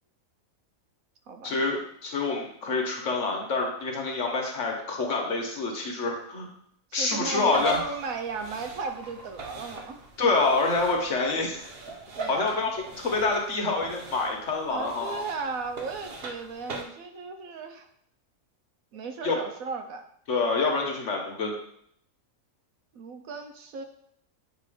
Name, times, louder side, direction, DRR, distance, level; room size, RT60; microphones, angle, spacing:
voice 1, 1.4-6.5 6.9-7.9 10.2-11.7 12.3-15.2 19.2-19.4 20.3-21.5, left 3 dB, 60° left, 1 dB, 1.4 m, -27 dB
voice 2, 6.9-10.0 12.1-12.7 14.7-17.9 18.9-20.1 22.9-23.8, right 4 dB, 75° right, 6 dB, 1.1 m, -36 dB
sound 1, 7.4-16.8, right 2 dB, 50° right, 0.9 m, -40 dB
7.6 x 3.0 x 5.0 m, 0.69 s
omnidirectional pair, 1.5 m